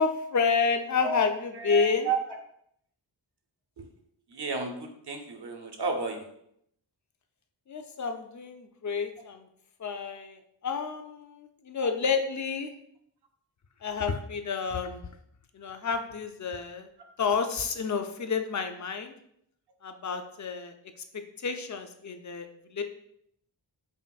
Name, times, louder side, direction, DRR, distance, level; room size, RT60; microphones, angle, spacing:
voice 1, 0.0-2.1 7.7-9.5 9.8-12.7 13.8-15.1 15.5-16.9 17.2-19.1 19.8-20.7 21.1-22.8, left 5 dB, 40° left, 7 dB, 0.4 m, -30 dB
voice 2, 1.5-2.2 3.8-3.9 4.3-6.3, right 4 dB, 60° right, 3 dB, 0.7 m, -32 dB
5.5 x 2.5 x 2.3 m, 0.73 s
wide cardioid pair, 65°, 45 cm